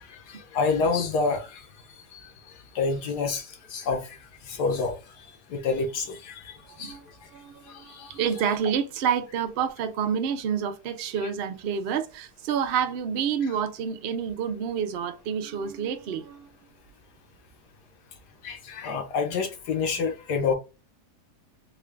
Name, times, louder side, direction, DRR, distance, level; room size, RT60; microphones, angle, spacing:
voice 1, 0.3-1.6 2.1-2.2 2.7-4.2 4.5-5.0 5.5-6.4 6.8-6.9 7.7-8.1 18.4-20.6, left 4 dB, 80° left, 1.4 m, -28 dB
voice 2, 6.6-16.5, right 7 dB, 75° right, 0.5 m, -29 dB
3.7 x 2.4 x 3.3 m
omnidirectional pair, 1.8 m